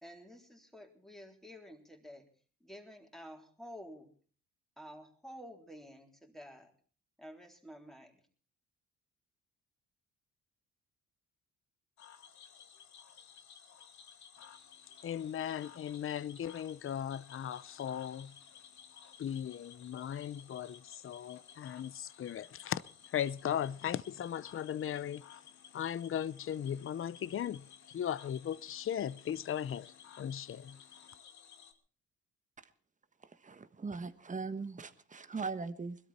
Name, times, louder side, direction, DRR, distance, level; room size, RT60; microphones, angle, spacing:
voice 1, 0.0-2.3 2.6-4.1 4.8-6.7 7.2-8.2, equal, ahead, 3.9 m, -51 dB
Cricket / Frog, 12.0-31.7, left 8 dB, 70° left, 2.4 m, -56 dB
voice 2, 15.0-18.3 19.2-22.8 23.1-25.2 25.7-27.7 27.9-30.8, left 9 dB, 45° left, 0.7 m, -37 dB
voice 3, 33.4-36.0, right 4 dB, 25° right, 1.3 m, -40 dB
21.5 x 12.5 x 4.3 m
cardioid pair, 90°, 30 cm